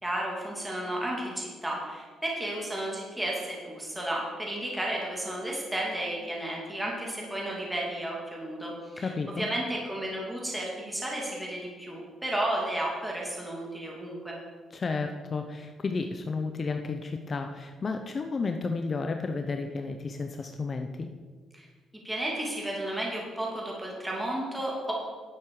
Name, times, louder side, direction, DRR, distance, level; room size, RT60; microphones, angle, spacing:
voice 1, 0.0-14.4 21.5-21.7 22.0-24.9, right 1 dB, 10° right, -3 dB, 2.8 m, -33 dB
voice 2, 9.0-9.5 14.7-21.1, left 4 dB, 40° left, 6 dB, 0.8 m, -32 dB
11.0 x 8.3 x 5.0 m, 1.5 s
cardioid pair, 90°, 0 cm